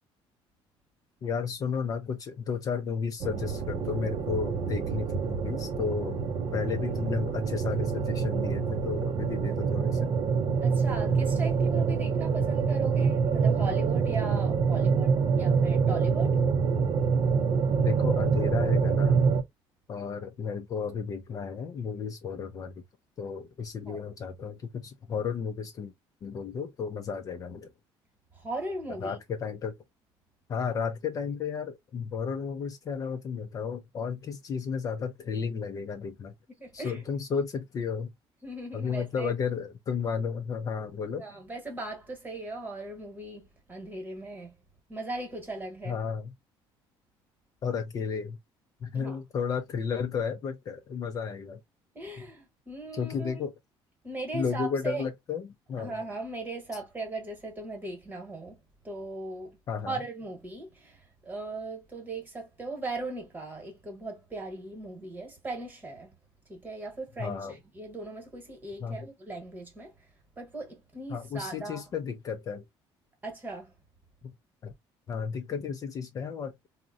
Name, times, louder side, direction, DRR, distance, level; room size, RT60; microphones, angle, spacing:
voice 1, 1.2-10.1 17.8-19.2 19.9-22.7 23.2-25.9 26.2-27.7 29.0-29.7 30.5-36.3 36.7-38.1 38.7-41.2 45.8-46.3 47.6-48.4 48.8-51.6 52.9-53.5 54.3-55.9 59.7-59.9 67.2-67.5 68.8-69.0 71.1-72.6 74.2-74.3 74.6-74.7 75.1-76.7, left 6 dB, 35° left, 0.4 m, -33 dB
sound 1, 3.2-19.4, right 5 dB, 45° right, 0.5 m, -26 dB
voice 2, 10.6-16.4 23.9-24.1 28.3-29.2 36.6-37.0 38.4-39.3 41.2-44.5 44.9-46.0 48.9-49.2 51.9-53.4 54.0-55.0 55.8-59.6 59.9-66.2 66.5-69.9 70.4-71.8 73.2-73.7, right 2 dB, 20° right, 1.1 m, -38 dB
3.6 x 2.1 x 2.4 m
cardioid pair, 140°, 10 cm